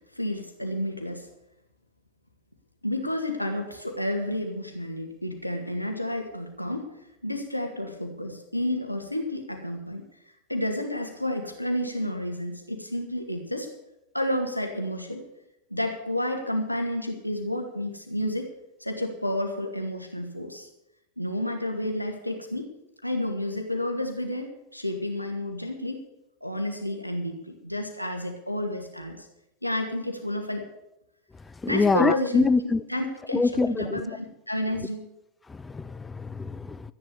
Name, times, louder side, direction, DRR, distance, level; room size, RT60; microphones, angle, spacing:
voice 1, 0.2-1.3 2.8-6.9 7.2-10.0 10.5-13.7 14.1-15.2 15.7-18.5 18.8-20.7 21.2-22.7 23.0-26.0 26.4-29.3 29.6-30.7 31.7-35.0, left 1 dB, 90° left, 4 dB, 2.1 m, -30 dB
voice 2, 31.6-32.8 33.3-34.1 35.5-36.9, left 4 dB, 10° left, 17 dB, 0.6 m, -25 dB
13.0 x 10.5 x 7.1 m, 0.88 s
figure-of-eight pair, 90°, 0 cm